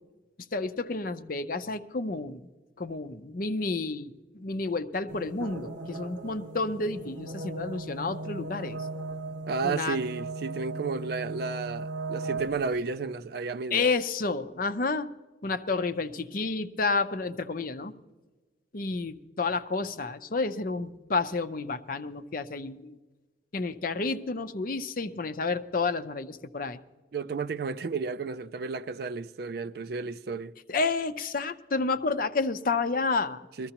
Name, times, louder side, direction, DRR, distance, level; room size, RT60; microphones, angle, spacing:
voice 1, 0.5-2.4 2.8-8.9 9.6-10.0 13.7-15.1 15.4-17.9 18.7-23.0 23.5-26.8 30.7-33.5, left 3 dB, 45° left, 0.6 m, -30 dB
sound 1, 5.1-12.8, right 2 dB, 80° right, 1.1 m, -37 dB
voice 2, 9.5-13.8 27.1-30.5 33.6-33.7, right 4 dB, 55° right, 0.4 m, -32 dB
20.5 x 14.5 x 2.9 m
head